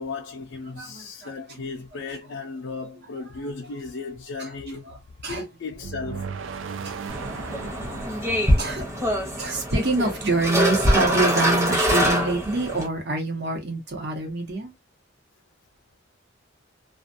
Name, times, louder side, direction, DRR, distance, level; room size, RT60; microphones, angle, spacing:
voice 1, 0.0-4.8 5.3-6.3 8.5-8.6, left 3 dB, 65° left, 0.4 m, -35 dB
voice 2, 0.7-1.6 4.4-4.5 4.9-5.4 6.8-7.0 8.3-14.7, right 2 dB, 60° right, 1.0 m, -27 dB
sound 1, 5.8-9.9, right 5 dB, 75° right, 0.4 m, -37 dB
sound 2, 7.1-12.9, equal, 15° right, 0.8 m, -24 dB
2.3 x 2.3 x 2.5 m
head